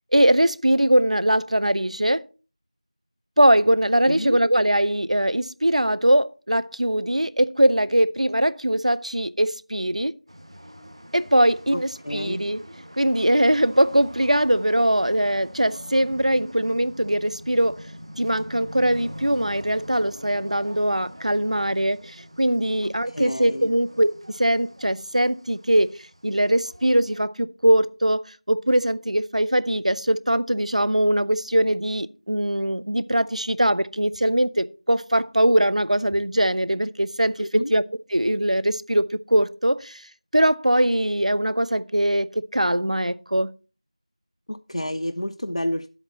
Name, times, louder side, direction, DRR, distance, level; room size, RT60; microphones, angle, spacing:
voice 1, 0.1-2.2 3.4-10.1 11.1-12.6 13.0-17.9 18.2-25.9 26.2-28.2 28.5-37.8 38.1-40.0 40.3-43.5, right 1 dB, 80° right, 0.6 m, -21 dB
voice 2, 4.1-4.4 11.7-12.4 22.8-23.7 37.4-37.7 44.5-45.9, left 1 dB, 75° left, 0.6 m, -30 dB
sound 1, 10.3-27.2, equal, 50° right, 1.6 m, -44 dB
11.0 x 8.2 x 4.1 m
figure-of-eight pair, 180°, 4 cm